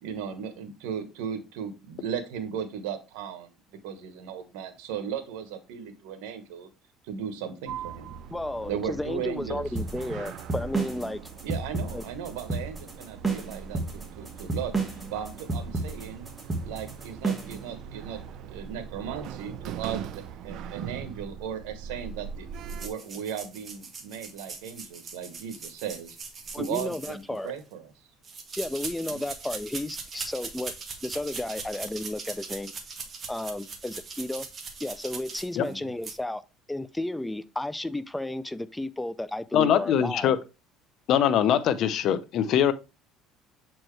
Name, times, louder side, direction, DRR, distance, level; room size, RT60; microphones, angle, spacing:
voice 1, 0.0-3.5 3.8-6.7 7.0-8.1 8.7-9.6 11.4-14.7 15.1-16.3 16.6-18.2 18.5-20.1 20.4-22.5 22.8-26.2 26.6-27.9 29.1-29.2 35.7-35.9, right 8 dB, 90° right, 1.2 m, -36 dB
Sliding door, 7.7-22.9, right 8 dB, 65° right, 0.5 m, -41 dB
voice 2, 8.3-11.2 11.9-12.0 26.5-27.5 28.6-30.7 31.0-32.7 33.3-34.5 34.8-36.4 36.7-40.3, left 1 dB, 5° left, 0.4 m, -33 dB
sound 1, 9.8-17.6, right 3 dB, 10° right, 1.6 m, -31 dB
sound 2, 22.7-27.6 28.2-35.7 36.0-36.2, right 5 dB, 35° right, 1.5 m, -40 dB
voice 3, 39.5-40.4 41.1-42.7, left 9 dB, 55° left, 0.7 m, -22 dB
7.4 x 4.6 x 3.2 m
cardioid pair, 115°, 0 cm